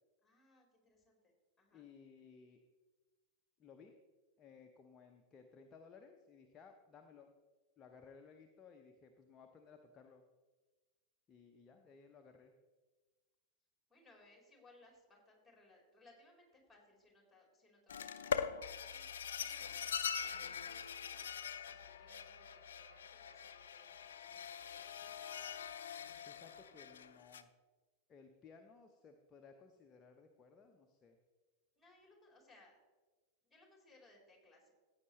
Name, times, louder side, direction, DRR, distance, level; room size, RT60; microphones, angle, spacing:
voice 1, 0.2-1.9 13.9-19.1 19.4-25.2 31.8-32.8 33.4-34.7, left 2 dB, 5° left, -1 dB, 3.8 m, -66 dB
voice 2, 1.7-2.6 3.6-4.0 4.4-7.3 7.8-10.2 11.3-12.5 26.2-27.5 28.1-31.2, left 5 dB, 25° left, 4 dB, 0.8 m, -60 dB
sound 1, 17.9-27.4, left 8 dB, 65° left, 0.5 m, -43 dB
sound 2, 18.3-19.4 19.8-20.1 22.1-23.5 24.5-25.3 25.8-26.0 26.5-26.8, right 2 dB, 75° right, 1.5 m, -67 dB
15.0 x 8.7 x 3.2 m, 1.3 s
figure-of-eight pair, 90°, 0 cm